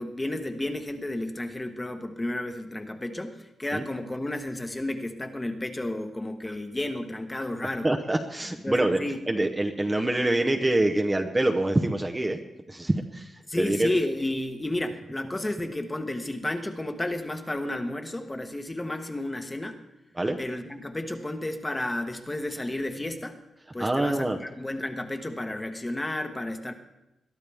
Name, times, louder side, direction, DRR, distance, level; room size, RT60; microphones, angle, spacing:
voice 1, 0.0-7.9 8.6-9.2 13.5-19.8 20.4-23.4 23.7-26.7, left 1 dB, 15° left, 6 dB, 1.2 m, -32 dB
voice 2, 7.8-9.0 9.3-12.4 12.7-13.3 13.6-13.9 20.1-20.4 23.8-24.4, right 1 dB, 15° right, 4 dB, 0.8 m, -25 dB
21.5 x 13.0 x 3.5 m, 0.91 s
wide cardioid pair, 120°, 0 cm